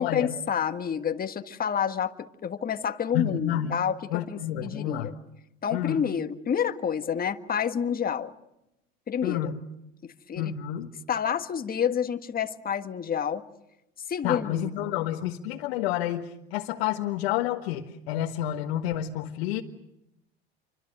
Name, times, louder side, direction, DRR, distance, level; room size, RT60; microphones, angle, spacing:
voice 1, 0.0-4.0 4.3-5.1 5.6-8.3 9.1-9.5 10.0-10.5 11.1-13.4 14.1-14.6, left 8 dB, 30° left, 8 dB, 1.6 m, -29 dB
voice 2, 3.1-3.8 4.1-5.1 5.7-6.0 9.2-9.6 10.4-10.9 14.2-19.6, left 11 dB, 70° left, 1 dB, 1.6 m, -29 dB
29.0 x 25.0 x 6.7 m, 0.86 s
hypercardioid pair, 90°, 32 cm